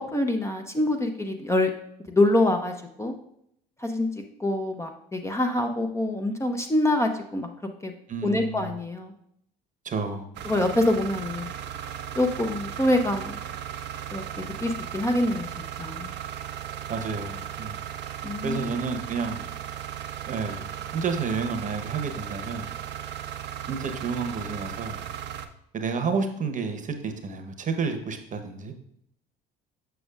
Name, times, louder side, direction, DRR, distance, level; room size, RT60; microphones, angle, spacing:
voice 1, 0.1-1.7 2.1-3.1 3.8-4.1 4.4-7.5 7.8-7.9 8.2-9.1 10.5-11.5 12.2-13.4 14.1-15.5 15.8-16.1 18.2-18.8, left 1 dB, 15° left, 4 dB, 0.7 m, -25 dB
voice 2, 8.1-8.8 9.8-10.3 16.9-17.8 18.4-19.4 20.3-20.7 20.9-22.7 23.7-25.0 25.7-28.7, right 5 dB, 40° right, 6 dB, 1.0 m, -30 dB
sound 1, 10.3-25.5, right 10 dB, 60° right, 0.6 m, -36 dB
6.8 x 6.1 x 2.5 m, 0.72 s
hypercardioid pair, 65°, 21 cm